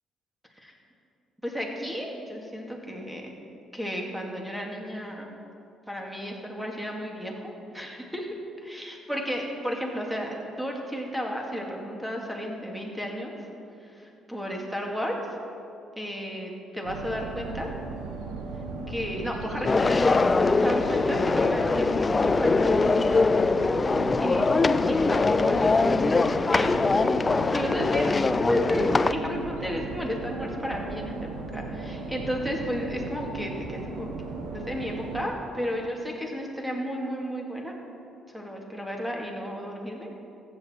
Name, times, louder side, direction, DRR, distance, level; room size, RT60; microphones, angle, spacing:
voice 1, 1.4-3.3 3.7-5.3 5.9-8.3 8.6-13.3 13.8-15.2 16.0-17.7 18.9-23.2 24.2-24.5 24.9-26.8 27.5-34.1 34.5-37.7 38.3-40.1, equal, 5° right, 0 dB, 2.4 m, -33 dB
sound 1, 16.8-35.3, right 3 dB, 85° right, 1.1 m, -36 dB
sound 2, 19.6-29.1, left 3 dB, 30° left, 0.4 m, -22 dB
14.5 x 7.7 x 4.6 m, 2.7 s
hypercardioid pair, 55°, 0 cm